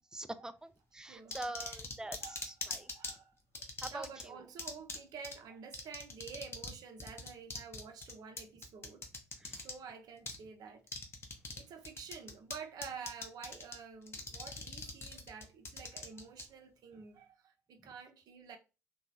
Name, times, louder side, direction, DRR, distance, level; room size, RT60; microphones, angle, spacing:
voice 1, 0.0-2.9 3.8-4.4 9.4-9.6, right 2 dB, 10° right, 0.3 m, -45 dB
voice 2, 1.1-1.8 2.2-3.3 3.9-9.0 9.5-10.8 11.6-18.6, right 6 dB, 50° right, 0.6 m, -49 dB
sound 1, 1.3-3.1 3.5-4.2 4.6-5.0 5.2-5.3 5.7-6.7 7.0-9.7 10.3-10.4 10.9-11.6 11.8-12.5 12.8-13.7 14.1-16.4, left 3 dB, 30° left, 0.7 m, -41 dB
2.8 x 2.3 x 2.6 m
hypercardioid pair, 55°, 8 cm